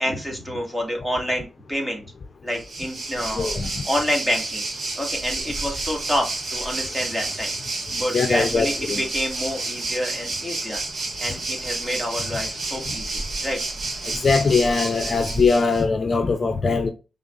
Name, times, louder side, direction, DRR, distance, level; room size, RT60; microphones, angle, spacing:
voice 1, 0.0-2.1 2.4-3.6 3.8-4.6 5.0-7.5 7.9-10.8 11.2-13.6, equal, 10° right, 2.2 m, -28 dB
Waves surf, 2.5-15.8, right 2 dB, 65° right, 1.6 m, -30 dB
voice 2, 3.3-3.8 8.1-9.0 14.1-16.9, left 4 dB, 50° left, 0.6 m, -21 dB
5.6 x 3.6 x 2.5 m
cardioid pair, 95°, 0 cm